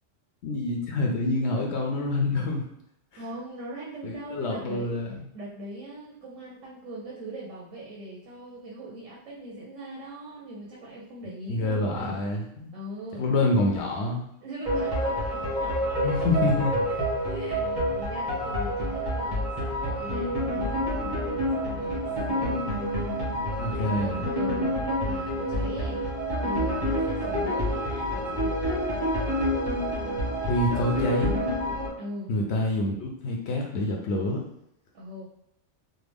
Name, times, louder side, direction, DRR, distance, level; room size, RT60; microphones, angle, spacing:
voice 1, 0.4-2.6 4.0-5.2 11.5-12.5 13.2-14.2 16.0-16.7 23.6-24.3 30.5-31.3 32.3-34.4, left 2 dB, 70° left, 1 dB, 0.8 m, -26 dB
voice 2, 3.1-4.9 5.3-12.2 12.7-13.3 14.4-16.3 16.6-17.0 17.2-17.7 18.0-22.7 23.5-26.0 26.4-28.8 32.0-32.3 34.9-35.3, right 1 dB, 90° right, -4 dB, 1.1 m, -40 dB
sound 1, 14.6-31.9, equal, 20° right, 1.1 m, -28 dB
3.4 x 2.0 x 3.4 m, 0.78 s
omnidirectional pair, 1.3 m